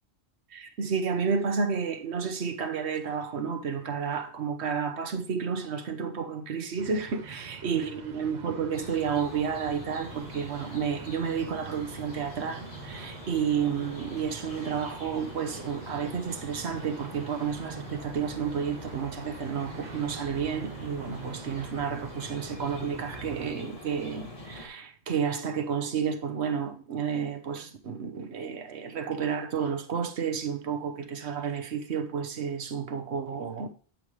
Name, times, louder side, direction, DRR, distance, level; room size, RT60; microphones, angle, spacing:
voice 1, 0.5-33.7, right 6 dB, 80° right, 1.2 m, -31 dB
sound 1, 6.8-23.5, right 5 dB, 45° right, 0.9 m, -45 dB
Summer Dawn Birds Phoenix Arizona, 8.7-24.7, left 1 dB, 35° left, 2.0 m, -45 dB
8.7 x 7.6 x 3.2 m
omnidirectional pair, 1.1 m